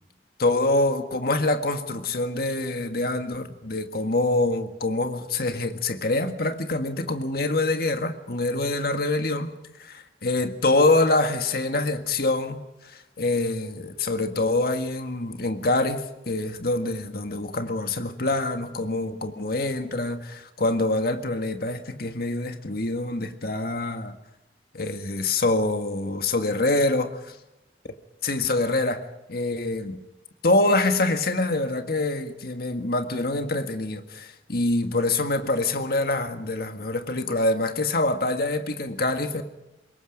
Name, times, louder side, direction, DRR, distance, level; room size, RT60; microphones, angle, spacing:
voice 1, 0.4-9.5 9.8-24.2 24.7-27.1 28.2-29.0 29.3-30.0 30.4-39.4, left 2 dB, 55° left, 1.8 m, -25 dB
25.0 x 22.0 x 5.2 m
head